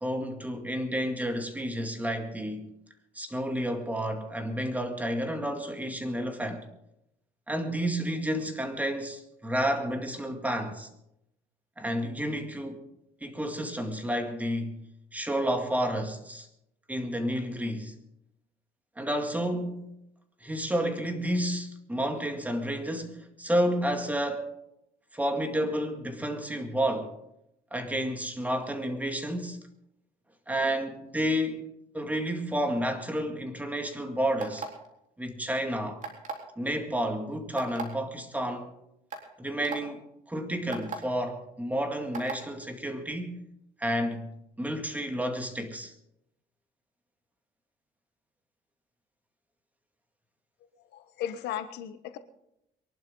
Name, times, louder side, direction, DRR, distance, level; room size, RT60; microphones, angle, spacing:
voice 1, 0.0-2.7 3.1-6.6 7.5-10.9 11.8-12.8 13.2-14.8 15.1-16.5 16.9-18.0 19.0-19.9 20.4-24.5 25.1-27.2 27.7-29.6 30.5-31.7 31.9-34.7 35.2-36.0 36.6-38.7 39.4-40.0 40.3-43.4 43.8-45.9, equal, 10° right, 2.1 m, -30 dB
sound 1, 34.4-34.9 36.0-36.5 37.6-37.8 38.6-38.7 39.1-39.2 39.6-39.8 40.7-41.0 42.1-42.4, right 4 dB, 45° right, 3.8 m, -35 dB
voice 2, 50.9-52.2, left 10 dB, 80° left, 1.2 m, -36 dB
23.0 x 12.0 x 3.9 m
cardioid pair, 110°, 17 cm